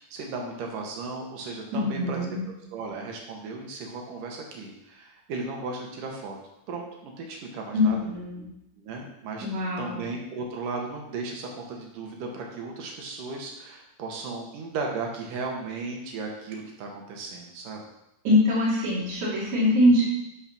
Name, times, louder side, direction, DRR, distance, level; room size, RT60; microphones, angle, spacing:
voice 1, 0.0-2.4 2.7-6.4 6.7-8.0 8.8-17.8, right 3 dB, 85° right, 1 dB, 3.1 m, -36 dB
voice 2, 1.7-2.4 7.7-8.5 9.4-10.0 18.2-20.0, left 1 dB, 60° right, -8 dB, 4.4 m, -23 dB
11.0 x 4.9 x 6.1 m, 0.85 s
omnidirectional pair, 3.7 m